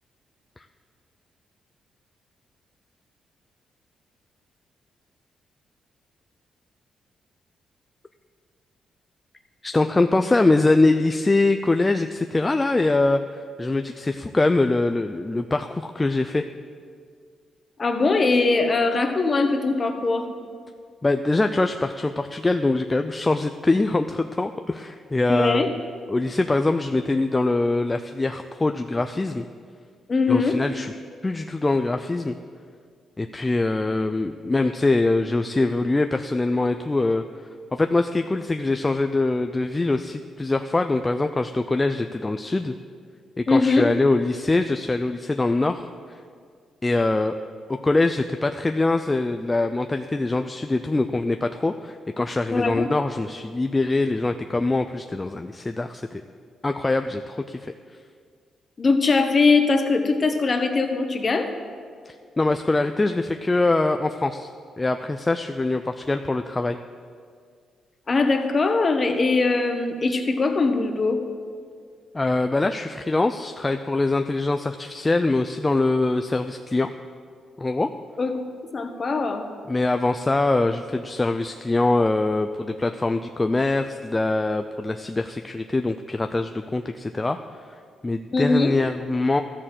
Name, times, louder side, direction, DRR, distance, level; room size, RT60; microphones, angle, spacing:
voice 1, 9.6-16.5 21.0-25.8 26.1-29.5 30.3-30.9 31.2-32.4 33.2-37.2 37.7-42.7 43.4-46.2 46.8-47.3 47.8-56.2 56.6-57.7 62.1-64.5 64.8-66.8 72.1-76.9 77.6-77.9 79.7-87.4 88.0-89.4, left 2 dB, 20° left, 7 dB, 0.4 m, -23 dB
voice 2, 17.8-20.3 25.3-25.7 30.1-30.6 43.5-43.9 52.5-52.9 58.8-61.5 68.1-71.2 78.2-78.4 78.7-79.4 88.3-88.7, left 3 dB, 35° left, 6 dB, 1.2 m, -21 dB
13.0 x 6.6 x 7.5 m, 2.1 s
cardioid pair, 100°, 0 cm